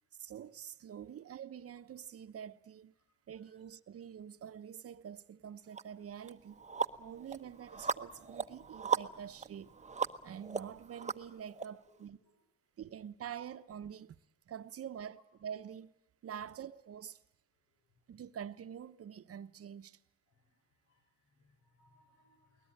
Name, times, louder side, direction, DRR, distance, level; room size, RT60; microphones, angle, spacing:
voice 1, 0.2-2.9 3.3-6.6 7.0-9.7 10.2-12.2 12.8-14.2 14.5-15.9 16.2-17.2 18.1-20.0, right 8 dB, 50° right, 1.0 m, -46 dB
sound 1, 5.7-5.8 6.3-11.7, right 5 dB, 25° right, 0.9 m, -38 dB
voice 2, 11.8-12.3 20.3-22.7, left 2 dB, 75° left, 5.5 m, -71 dB
22.0 x 19.5 x 8.8 m
cardioid pair, 90°, 30 cm